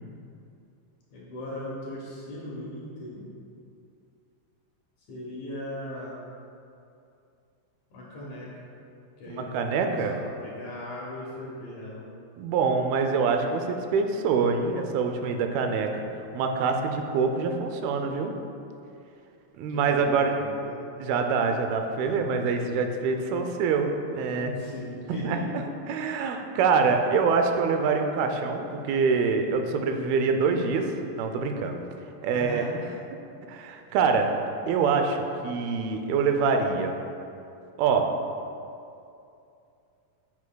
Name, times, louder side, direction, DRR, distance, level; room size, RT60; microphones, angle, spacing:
voice 1, 1.1-3.3 5.1-6.2 7.9-8.5 9.2-12.0 19.7-20.8 22.1-22.2 24.5-25.5 32.3-32.8, left 1 dB, 65° left, -5 dB, 2.1 m, -38 dB
voice 2, 9.3-10.2 12.4-16.0 16.3-18.3 19.6-20.3 21.0-24.6 25.2-25.4 25.9-31.8 32.2-32.6 33.5-34.3 34.7-36.9 37.8-38.1, right 5 dB, 85° right, 5 dB, 2.5 m, -25 dB
9.6 x 7.2 x 2.2 m, 2.6 s
omnidirectional pair, 4.3 m